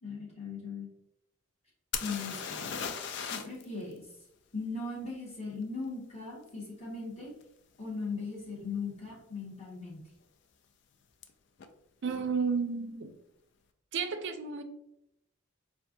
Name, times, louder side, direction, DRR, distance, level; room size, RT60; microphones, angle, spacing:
voice 1, 0.0-0.9 2.0-2.7 3.3-4.0 4.5-7.3 7.8-10.0, left 4 dB, 30° left, -6 dB, 1.4 m, -38 dB
sound 1, 1.9-3.6 3.9-4.0 7.4-7.5 8.2-8.3 8.6-9.2 11.2-11.3 11.6-11.7, left 7 dB, 60° left, 0.3 m, -37 dB
voice 2, 12.0-13.1 13.9-14.6, right 5 dB, 60° right, 8 dB, 0.4 m, -32 dB
4.4 x 2.5 x 2.6 m, 0.82 s
head